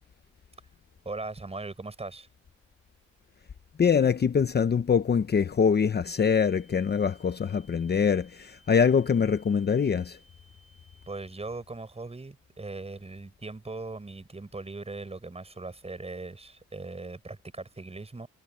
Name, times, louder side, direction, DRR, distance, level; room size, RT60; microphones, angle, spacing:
voice 1, 1.0-2.3 11.1-18.3, right 3 dB, 20° right, 7.5 m, -39 dB
voice 2, 3.8-10.2, left 6 dB, 35° left, 1.0 m, -24 dB
sound 1, 6.0-11.4, equal, ahead, 5.7 m, -61 dB
cardioid pair, 90°, 30 cm